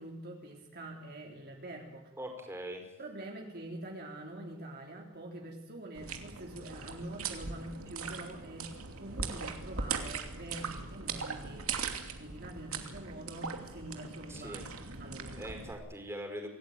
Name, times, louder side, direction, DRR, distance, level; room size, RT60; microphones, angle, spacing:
voice 1, 0.0-2.1 3.0-15.6, right 1 dB, 50° right, 0 dB, 3.4 m, -45 dB
voice 2, 2.2-2.8 14.3-14.6 15.4-16.5, equal, 10° right, 4 dB, 5.0 m, -41 dB
sound 1, 5.9-15.7, right 5 dB, 75° right, 2.7 m, -40 dB
26.5 x 17.5 x 9.4 m, 0.97 s
head